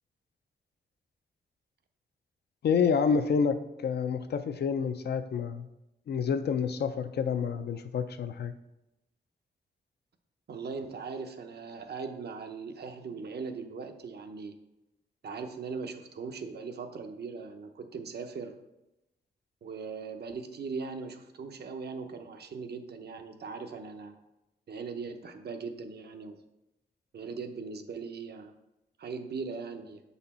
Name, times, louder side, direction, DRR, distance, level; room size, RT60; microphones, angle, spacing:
voice 1, 2.6-5.7 6.1-8.5, left 6 dB, 65° left, 9 dB, 0.5 m, -28 dB
voice 2, 10.5-14.5 15.2-18.5 19.6-24.2 24.7-26.4 27.1-28.5 29.0-30.0, right 5 dB, 65° right, 6 dB, 0.7 m, -39 dB
6.8 x 4.1 x 4.2 m, 0.93 s
wide cardioid pair, 130°, 18 cm